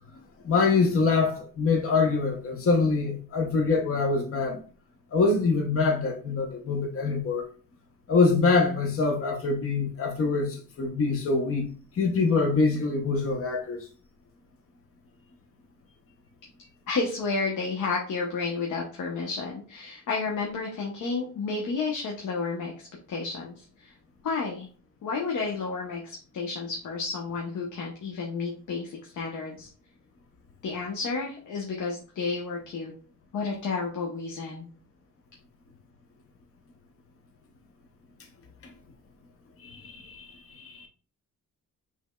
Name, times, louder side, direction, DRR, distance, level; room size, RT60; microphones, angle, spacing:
voice 1, 0.4-4.6 5.1-7.4 8.1-13.8 39.6-40.9, left 4 dB, 45° left, 0.9 m, -25 dB
voice 2, 16.9-23.9 24.2-24.7 25.0-29.7 30.6-32.9 33.3-34.7, left 4 dB, 70° left, 1.0 m, -31 dB
5.1 x 3.5 x 2.3 m
cardioid pair, 100°, 31 cm